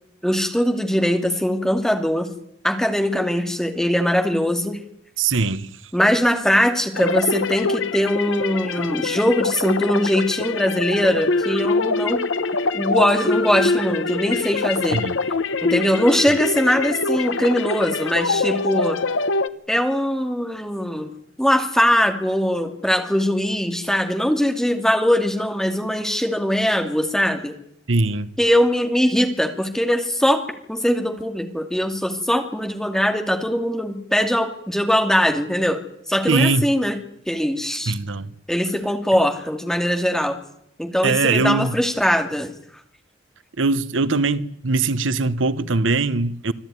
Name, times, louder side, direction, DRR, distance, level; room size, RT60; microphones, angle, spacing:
voice 1, 0.2-2.3 2.6-4.8 5.9-12.3 12.7-15.0 15.6-19.0 19.7-21.1 21.4-27.6 28.4-30.4 30.7-35.8 36.1-37.0 37.3-37.9 38.5-40.4 40.8-42.5, equal, 5° left, 2.4 m, -21 dB
voice 2, 5.2-5.7 14.9-15.1 27.9-28.3 36.3-36.6 37.9-38.3 41.0-41.8 43.6-46.5, right 3 dB, 80° right, 1.0 m, -21 dB
sound 1, 7.0-19.5, left 3 dB, 80° left, 1.1 m, -24 dB
25.5 x 14.0 x 9.5 m
head